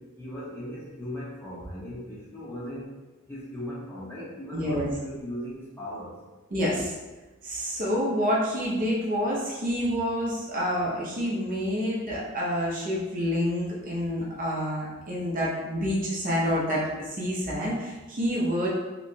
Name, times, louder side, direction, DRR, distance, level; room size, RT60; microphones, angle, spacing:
voice 1, 0.0-2.9 3.3-6.1, equal, 10° left, -7 dB, 0.9 m, -38 dB
voice 2, 4.5-4.9 6.5-6.9 7.4-18.7, equal, 40° right, -5 dB, 0.7 m, -28 dB
3.2 x 3.0 x 2.7 m, 1.2 s
head